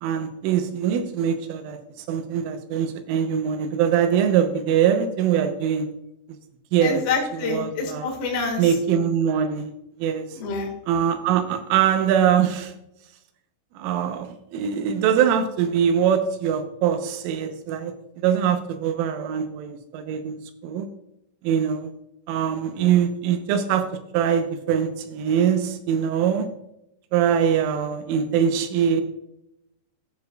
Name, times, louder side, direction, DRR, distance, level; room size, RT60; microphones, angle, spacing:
voice 1, 0.0-1.8 2.1-5.9 6.7-7.0 7.3-8.1 8.6-9.7 10.0-10.3 10.9-12.7 13.8-17.9 18.2-20.9 21.4-21.9 22.3-23.9 24.1-26.5 27.1-29.0, right 8 dB, 85° right, 7 dB, 3.5 m, -22 dB
voice 2, 6.8-8.6 10.3-10.7, left 4 dB, 80° left, 2 dB, 1.3 m, -27 dB
14.5 x 7.2 x 2.4 m, 0.84 s
omnidirectional pair, 5.8 m